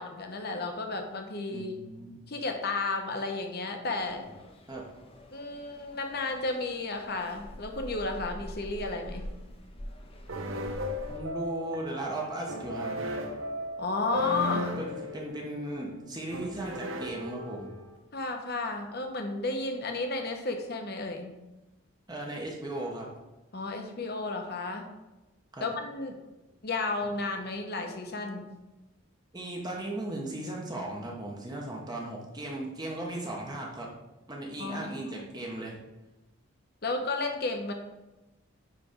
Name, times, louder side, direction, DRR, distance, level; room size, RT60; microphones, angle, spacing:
voice 1, 0.0-1.8 2.3-4.2 5.3-9.3 13.8-14.8 18.1-21.3 23.5-24.9 25.6-26.2 26.6-28.5 34.6-34.9 36.8-37.7, left 3 dB, 45° left, 4 dB, 1.0 m, -33 dB
voice 2, 1.5-2.2 4.7-4.8 11.1-12.9 14.8-17.7 22.1-23.1 25.5-25.6 29.3-33.9 34.3-35.8, right 1 dB, 20° right, -2 dB, 1.0 m, -37 dB
sound 1, 3.9-11.2, equal, 25° left, 0.7 m, -45 dB
sound 2, 10.3-18.0, left 1 dB, 65° right, 0.9 m, -36 dB
9.6 x 3.4 x 5.1 m, 1.0 s
head